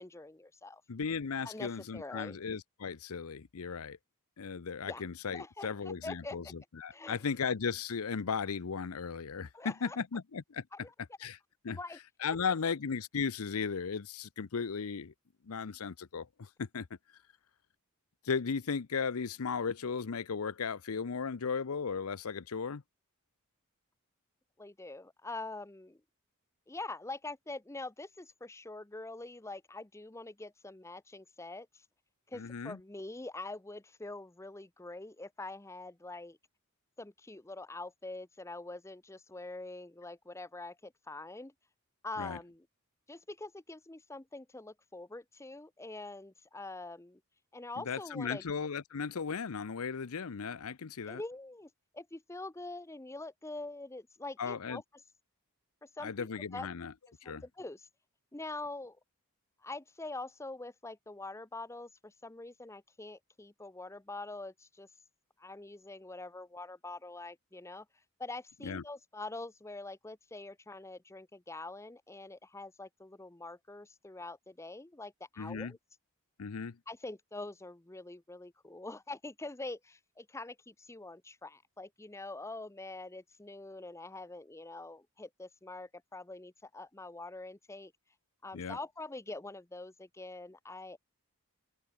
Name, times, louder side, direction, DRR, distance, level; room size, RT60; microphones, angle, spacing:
voice 1, 0.0-0.8 1.4-2.4 4.9-5.0 5.3-6.4 6.9-7.2 9.5-10.0 10.7-10.9 11.7-12.0 24.6-26.0 26.7-31.7 32.3-36.4 37.0-41.5 42.0-42.7 43.1-47.2 47.5-48.4 51.1-54.8 55.8-56.3 56.5-56.7 57.2-57.9 58.3-59.0 59.6-64.9 65.4-67.9 68.2-75.8 76.9-87.9 88.4-91.0, left 2 dB, 15° left, 0.7 m, -44 dB
voice 2, 0.9-4.0 4.4-10.6 11.2-11.4 11.6-11.8 12.2-15.1 15.5-16.9 18.2-22.8 32.3-32.8 42.2-42.4 47.8-51.2 54.4-54.8 56.0-56.9 57.2-57.4 68.6-68.8 75.4-75.7 76.4-76.8 88.5-88.8, left 5 dB, 75° left, 0.6 m, -36 dB
open air
head